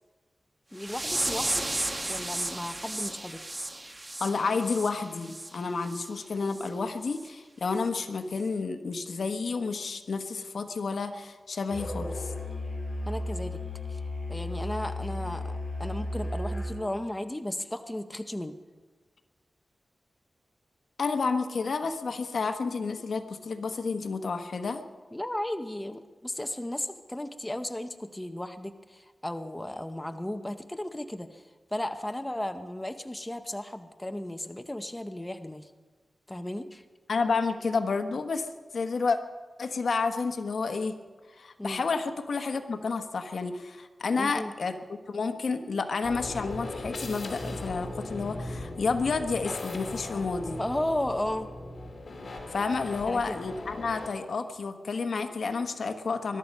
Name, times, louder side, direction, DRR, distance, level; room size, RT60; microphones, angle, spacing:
voice 1, 0.7-1.7 2.1-3.4 13.1-13.6 13.9-14.0 14.3-18.6 25.1-35.7 36.3-36.8 41.6-41.8 44.2-44.5 50.6-51.5 53.1-53.5, left 1 dB, 15° left, 8 dB, 0.7 m, -35 dB
sound 1, 0.8-5.5 5.9-6.1 6.5-6.7 7.2-7.3 7.8-7.9, right 1 dB, 20° right, 1.1 m, -33 dB
voice 2, 4.2-12.3 21.0-24.8 37.1-38.5 38.7-39.2 39.6-40.9 41.4-44.8 45.1-50.6 52.5-56.4, left 4 dB, 70° left, 7 dB, 1.1 m, -30 dB
Musical instrument, 11.7-16.8, left 1 dB, 30° left, 4.7 m, -34 dB
sound 2, 46.0-54.1, left 2 dB, 55° left, 2.8 m, -38 dB
21.5 x 12.5 x 5.4 m, 1.4 s
wide cardioid pair, 105°, 0 cm